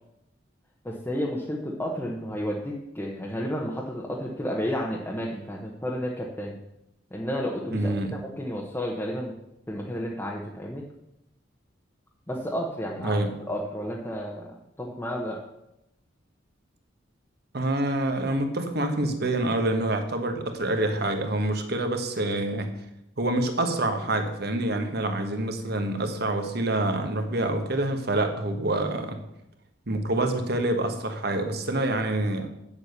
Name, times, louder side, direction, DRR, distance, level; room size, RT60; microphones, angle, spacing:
voice 1, 0.8-6.6 7.1-9.3 9.7-10.8 12.3-15.4, equal, 10° left, -2 dB, 1.0 m, -32 dB
voice 2, 7.7-8.2 13.0-13.4 17.5-22.7 23.2-29.2 29.9-32.5, right 1 dB, 55° right, 6 dB, 1.3 m, -26 dB
8.5 x 7.2 x 6.7 m, 0.85 s
head